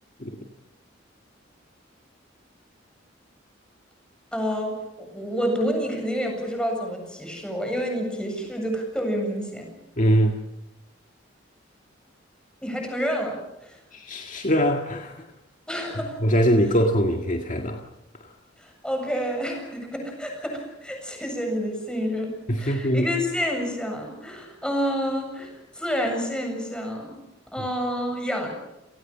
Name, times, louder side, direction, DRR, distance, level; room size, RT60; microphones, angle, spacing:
voice 1, 4.3-9.7 12.6-13.8 15.7-16.2 18.6-22.3 22.6-27.1 27.5-28.5, equal, 5° left, 2 dB, 7.7 m, -29 dB
voice 2, 10.0-10.4 13.9-15.1 16.2-17.8 22.5-23.1, equal, 45° left, 3 dB, 1.9 m, -22 dB
29.5 x 18.5 x 7.4 m, 0.90 s
head